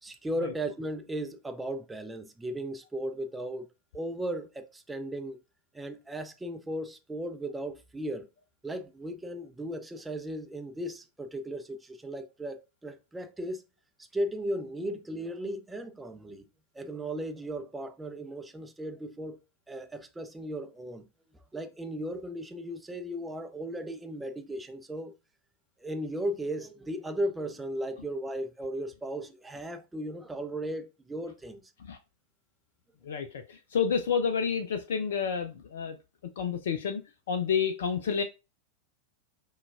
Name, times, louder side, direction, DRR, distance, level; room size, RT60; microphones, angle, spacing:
voice 1, 0.0-3.7 3.9-5.4 5.7-8.3 8.6-13.6 14.1-16.5 16.7-19.4 19.7-21.0 21.5-25.1 25.8-31.7, right 1 dB, 10° right, 0.5 m, -36 dB
voice 2, 33.0-36.0 36.4-37.0 37.3-38.2, left 6 dB, 60° left, 0.4 m, -29 dB
5.6 x 2.3 x 2.3 m
figure-of-eight pair, 90°, 0 cm